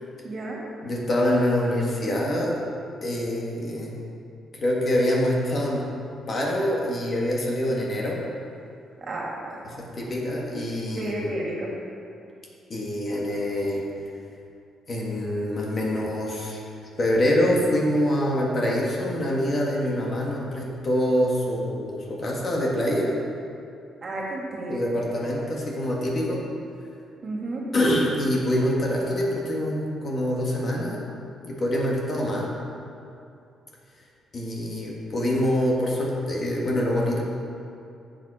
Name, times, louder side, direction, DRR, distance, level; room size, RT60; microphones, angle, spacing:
voice 1, 0.2-0.6 9.0-9.6 11.0-11.8 24.0-25.0 27.2-27.7, right 1 dB, 45° right, -2 dB, 2.3 m, -32 dB
voice 2, 0.8-2.6 3.0-4.0 4.5-5.8 6.3-8.2 9.8-11.3 12.7-13.8 14.9-16.6 17.0-23.1 24.7-26.4 27.7-31.0 31.4-32.5 34.3-37.2, left 1 dB, 45° left, -3 dB, 2.1 m, -25 dB
10.5 x 7.5 x 4.4 m, 2.6 s
cardioid pair, 90°, 0 cm